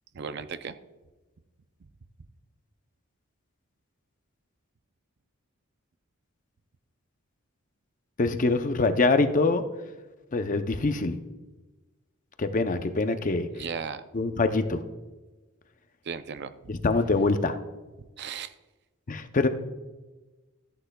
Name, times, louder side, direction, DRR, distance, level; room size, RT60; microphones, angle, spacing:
voice 1, 0.1-0.8 13.5-14.0 16.1-16.7 18.0-18.5, right 6 dB, 55° right, 11 dB, 0.5 m, -36 dB
voice 2, 8.2-9.6 10.3-11.2 12.4-13.5 14.1-14.8 16.7-17.6 19.1-19.5, left 3 dB, 40° left, 8 dB, 0.6 m, -24 dB
13.5 x 9.9 x 2.3 m, 1.2 s
head